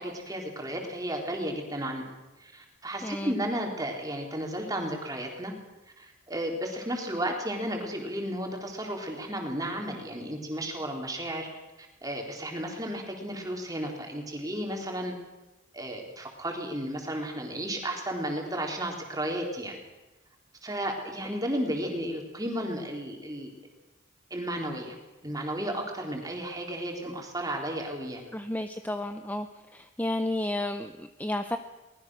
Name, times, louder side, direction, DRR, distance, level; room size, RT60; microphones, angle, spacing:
voice 1, 0.0-2.0 2.4-5.5 6.0-11.5 12.0-15.2 15.7-19.8 20.6-23.5 24.3-25.0 25.2-28.3, right 1 dB, 20° right, 1 dB, 3.8 m, -33 dB
voice 2, 3.0-3.3 28.3-29.5 29.7-31.6, left 1 dB, 10° left, 8 dB, 0.7 m, -32 dB
23.5 x 20.0 x 6.4 m, 1.1 s
head